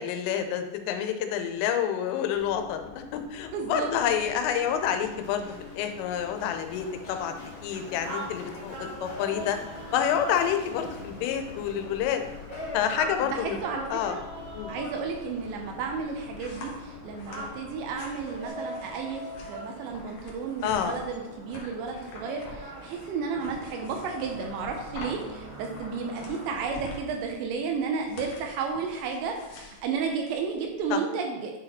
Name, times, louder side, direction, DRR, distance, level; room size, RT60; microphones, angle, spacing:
voice 1, 0.0-2.8 3.1-7.3 7.6-8.8 9.0-9.6 9.9-12.2 12.7-13.6 13.9-14.2 14.5-14.7 20.6-21.0 30.9-31.0, left 9 dB, 90° left, 7 dB, 3.3 m, -28 dB
Run, 2.3-18.5, left 4 dB, 55° left, 3.1 m, -45 dB
voice 2, 3.5-4.3 13.2-14.2 14.7-19.2 19.5-31.5, right 5 dB, 80° right, 3 dB, 2.8 m, -32 dB
sound 1, 7.4-26.7, equal, 45° right, 1.8 m, -42 dB
sound 2, 15.7-30.9, left 2 dB, 70° left, 1.9 m, -46 dB
10.5 x 4.1 x 4.2 m, 1.0 s
omnidirectional pair, 5.6 m